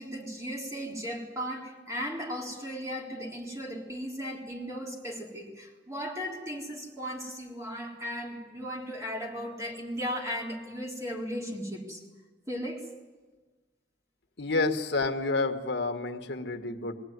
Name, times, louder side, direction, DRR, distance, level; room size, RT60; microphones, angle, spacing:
voice 1, 0.0-12.0 12.5-12.9, equal, 15° right, -1 dB, 3.6 m, -36 dB
voice 2, 14.4-16.9, left 3 dB, 65° left, 5 dB, 1.6 m, -29 dB
21.5 x 16.5 x 9.5 m, 1.3 s
head